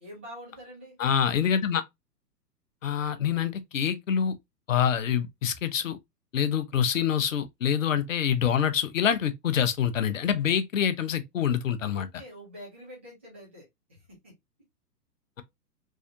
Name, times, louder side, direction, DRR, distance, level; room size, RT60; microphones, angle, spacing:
voice 1, 0.0-0.9 11.9-14.3, equal, 10° right, 0.4 m, -46 dB
voice 2, 1.0-1.8 2.8-4.4 4.7-6.0 6.3-12.1, left 8 dB, 55° left, 0.6 m, -26 dB
3.2 x 2.7 x 2.5 m
figure-of-eight pair, 115°, 48 cm